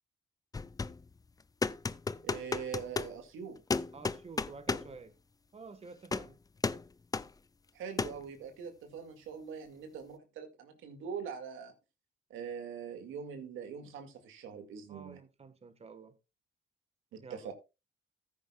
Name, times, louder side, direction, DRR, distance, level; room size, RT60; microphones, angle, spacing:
sound 1, 0.5-1.0 1.6-3.1 3.7-4.9 6.1-6.3 6.6-6.9 7.1-7.3 8.0-8.2, left 4 dB, 20° left, 0.4 m, -33 dB
voice 1, 2.2-3.6 7.7-11.7 12.3-15.2 17.1-17.5, right 7 dB, 85° right, 2.1 m, -43 dB
voice 2, 3.9-5.1 5.5-6.4 14.9-16.1 17.2-17.5, right 4 dB, 30° right, 1.4 m, -49 dB
14.0 x 9.5 x 2.3 m
cardioid pair, 90°, 20 cm